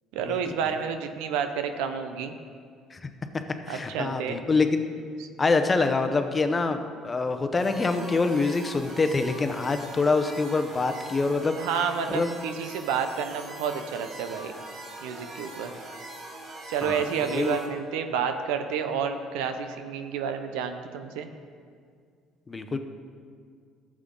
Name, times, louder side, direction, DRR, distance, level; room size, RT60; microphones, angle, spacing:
voice 1, 0.1-2.3 3.7-4.4 5.2-5.3 11.6-14.5 15.0-15.7 16.7-21.3, right 7 dB, 90° right, 7 dB, 0.7 m, -30 dB
voice 2, 3.7-4.8 5.4-11.6 12.1-12.3 16.8-17.6 22.5-22.8, left 3 dB, 25° left, 7 dB, 0.8 m, -25 dB
sound 1, 7.6-17.7, right 2 dB, 50° right, 2.3 m, -42 dB
13.0 x 7.5 x 3.8 m, 2.1 s
supercardioid pair, 95°, 0 cm